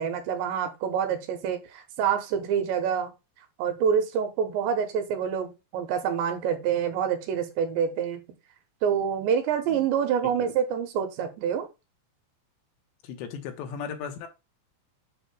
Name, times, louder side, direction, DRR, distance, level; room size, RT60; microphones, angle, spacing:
voice 1, 0.0-3.1 3.6-8.2 8.8-11.7, right 8 dB, 85° right, 3.4 m, -27 dB
voice 2, 13.0-14.3, left 7 dB, 85° left, 3.3 m, -37 dB
8.3 x 6.6 x 2.2 m
omnidirectional pair, 5.0 m